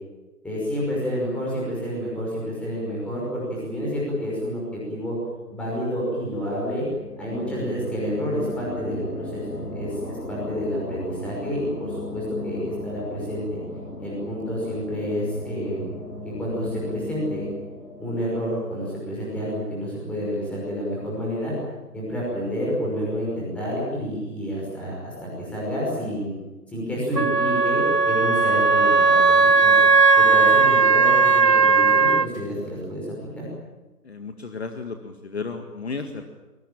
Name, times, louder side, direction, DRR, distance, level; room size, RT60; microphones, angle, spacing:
voice 1, 0.4-5.2 5.5-6.8 7.2-13.6 14.0-15.9 16.2-17.5 18.0-21.5 21.9-26.3 26.7-29.9 30.2-33.5, equal, 5° left, -5 dB, 5.7 m, -29 dB
sound 1, 6.9-20.2, left 2 dB, 75° left, 5.9 m, -36 dB
Wind instrument woodwind instrument, 27.2-32.3, right 4 dB, 90° right, 1.2 m, -17 dB
voice 2, 34.0-36.3, left 4 dB, 40° left, 6 dB, 1.9 m, -33 dB
22.5 x 22.0 x 9.0 m, 1.1 s
figure-of-eight pair, 155°, 47 cm